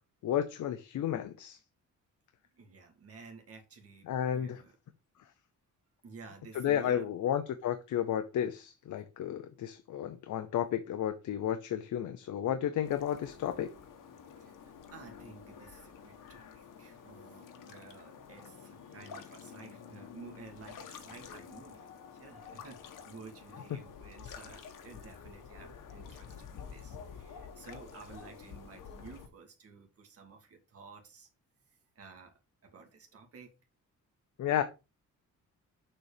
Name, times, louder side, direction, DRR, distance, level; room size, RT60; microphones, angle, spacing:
voice 1, 0.2-1.6 4.1-4.6 6.5-13.7 34.4-34.6, left 10 dB, 70° left, 0.8 m, -32 dB
voice 2, 2.5-4.1 4.3-4.7 6.0-7.1 14.4-31.3 32.0-32.3 32.6-33.5, right 4 dB, 50° right, 2.0 m, -52 dB
sound 1, 12.8-29.3, left 6 dB, 85° left, 1.4 m, -49 dB
7.0 x 4.3 x 4.9 m
wide cardioid pair, 170°, 31 cm